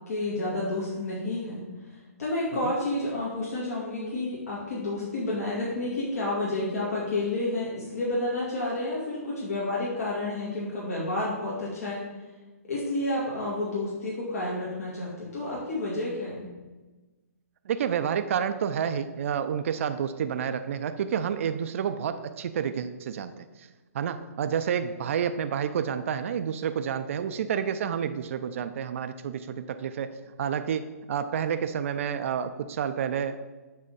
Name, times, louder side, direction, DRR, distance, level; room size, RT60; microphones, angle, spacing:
voice 1, 0.1-1.6 1.9-12.0 12.7-16.5, left 2 dB, 70° left, -6 dB, 2.1 m, -30 dB
voice 2, 17.7-23.3 23.6-23.7 23.9-33.4, right 8 dB, 55° right, 9 dB, 0.4 m, -29 dB
7.5 x 3.5 x 5.6 m, 1.2 s
hypercardioid pair, 145°, 9 cm